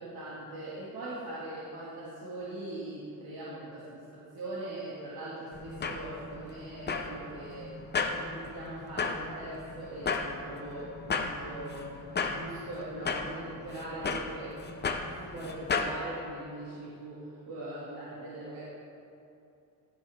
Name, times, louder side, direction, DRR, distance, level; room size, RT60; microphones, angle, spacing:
voice 1, 0.0-7.7 8.1-12.0 12.3-14.6 15.2-18.6, right 1 dB, 80° right, -9 dB, 2.9 m, -41 dB
sound 1, 5.5-16.0, left 4 dB, 30° left, 0.8 m, -35 dB
15.5 x 11.0 x 3.8 m, 2.7 s
cardioid pair, 155°, 37 cm